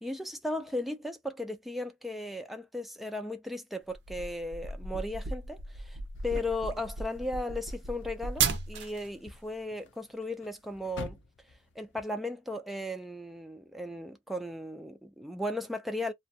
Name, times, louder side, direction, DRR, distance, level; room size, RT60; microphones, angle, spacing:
voice 1, 0.0-11.2 11.8-16.1, left 1 dB, ahead, 0.4 m, -36 dB
sound 1, 3.9-9.1, right 5 dB, 75° right, 0.5 m, -34 dB
sound 2, 6.1-12.0, left 3 dB, 85° left, 0.5 m, -50 dB
2.3 x 2.2 x 2.7 m
head